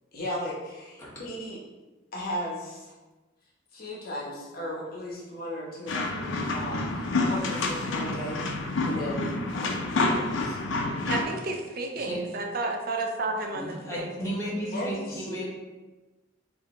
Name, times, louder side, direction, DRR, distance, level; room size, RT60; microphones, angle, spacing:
voice 1, 0.1-1.6 2.1-2.9 3.7-8.4 8.8-9.7 10.0-10.6 14.7-15.5, equal, 50° left, -4 dB, 1.0 m, -36 dB
sound 1, 5.9-11.2, left 2 dB, 70° left, 0.5 m, -28 dB
voice 2, 11.1-14.2, right 2 dB, 50° right, 2 dB, 0.5 m, -31 dB
voice 3, 13.5-15.5, equal, 15° left, -7 dB, 1.1 m, -34 dB
4.7 x 2.7 x 3.2 m, 1.2 s
head